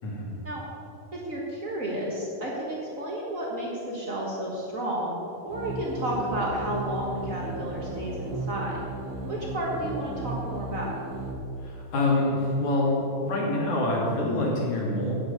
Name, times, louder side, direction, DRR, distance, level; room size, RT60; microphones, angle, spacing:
voice 1, 0.0-0.3 11.6-15.1, left 2 dB, 55° left, -4 dB, 3.7 m, -26 dB
voice 2, 1.1-8.8 9.2-10.9, right 1 dB, 55° right, -4 dB, 0.8 m, -32 dB
sound 1, 5.5-11.3, right 2 dB, 80° right, 1.1 m, -35 dB
9.2 x 8.2 x 6.6 m, 2.7 s
omnidirectional pair, 4.1 m